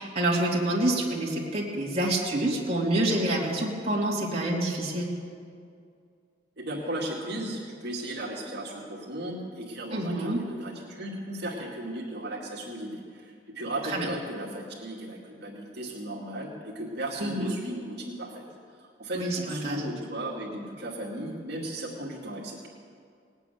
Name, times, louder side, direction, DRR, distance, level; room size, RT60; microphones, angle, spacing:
voice 1, 0.0-5.1 9.9-10.4 13.9-14.1 17.2-17.5 19.1-19.8, right 1 dB, 35° right, -5 dB, 2.6 m, -27 dB
voice 2, 6.6-18.4 18.7-22.6, right 1 dB, 60° right, -3 dB, 2.3 m, -36 dB
19.0 x 8.1 x 9.3 m, 2.3 s
head